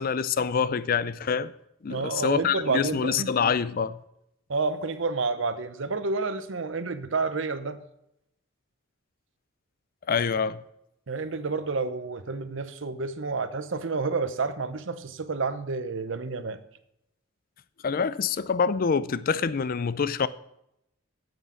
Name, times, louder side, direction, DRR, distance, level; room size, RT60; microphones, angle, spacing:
voice 1, 0.0-1.5 1.8-4.0 10.1-10.6 17.8-20.3, left 6 dB, 45° left, 0.4 m, -26 dB
voice 2, 1.9-3.3 4.5-7.8 11.1-16.6, right 4 dB, 65° right, 0.8 m, -29 dB
9.1 x 8.1 x 6.2 m
head